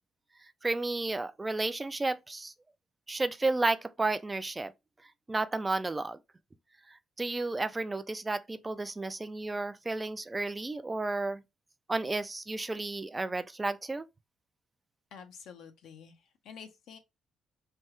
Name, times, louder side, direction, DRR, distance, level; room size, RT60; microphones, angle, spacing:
voice 1, 0.6-2.5 3.1-4.7 5.3-6.2 6.9-11.4 11.9-14.0, right 2 dB, 20° right, 0.3 m, -32 dB
voice 2, 15.1-17.0, left 7 dB, 80° left, 0.7 m, -49 dB
3.3 x 2.3 x 2.9 m
cardioid pair, 90°, 0 cm